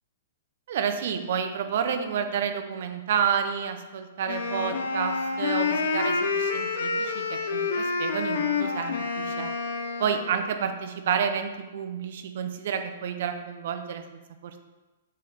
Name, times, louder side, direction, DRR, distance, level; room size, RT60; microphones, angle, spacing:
voice 1, 0.7-9.5 10.0-14.6, right 7 dB, 65° right, 7 dB, 0.7 m, -30 dB
Wind instrument woodwind instrument, 4.3-10.5, left 4 dB, 75° left, 0.7 m, -28 dB
8.5 x 3.2 x 4.0 m, 1.1 s
hypercardioid pair, 130°, 0 cm